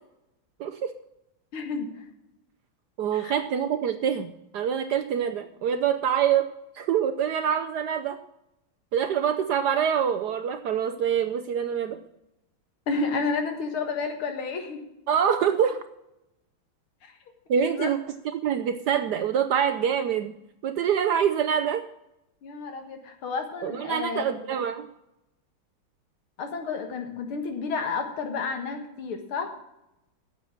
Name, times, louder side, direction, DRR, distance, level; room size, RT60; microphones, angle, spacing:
voice 1, 0.6-0.9 3.0-6.5 6.7-8.2 8.9-12.0 15.1-15.8 17.5-18.0 18.3-20.3 20.6-21.9 23.6-24.9, right 8 dB, 70° right, 9 dB, 1.0 m, -25 dB
voice 2, 1.5-2.0 3.1-3.4 12.9-14.8 17.0-17.1 17.6-17.9 22.4-24.2 26.4-29.5, left 4 dB, 85° left, 5 dB, 2.5 m, -31 dB
9.5 x 7.5 x 7.5 m, 0.88 s
omnidirectional pair, 2.3 m